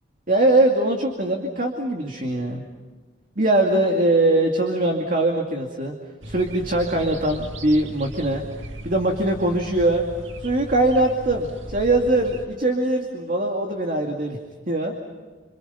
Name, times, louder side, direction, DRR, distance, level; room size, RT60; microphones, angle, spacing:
voice 1, 0.3-2.6 3.4-5.9 6.2-8.4 8.8-10.0 10.4-14.4 14.7-14.9, right 2 dB, 45° right, 2 dB, 2.4 m, -21 dB
sound 1, 6.2-12.5, right 1 dB, 85° right, 2.2 m, -37 dB
27.5 x 27.0 x 5.8 m, 1.4 s
head